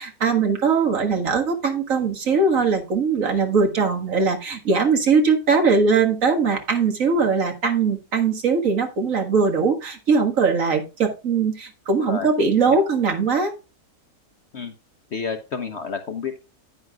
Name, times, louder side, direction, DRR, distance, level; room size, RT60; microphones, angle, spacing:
voice 1, 0.0-13.5, right 4 dB, 60° right, 4 dB, 2.0 m, -20 dB
voice 2, 12.0-12.3 12.7-12.8 14.5-14.7 15.1-16.4, left 5 dB, 50° left, 8 dB, 1.0 m, -30 dB
9.7 x 9.2 x 2.3 m, 0.29 s
omnidirectional pair, 1.6 m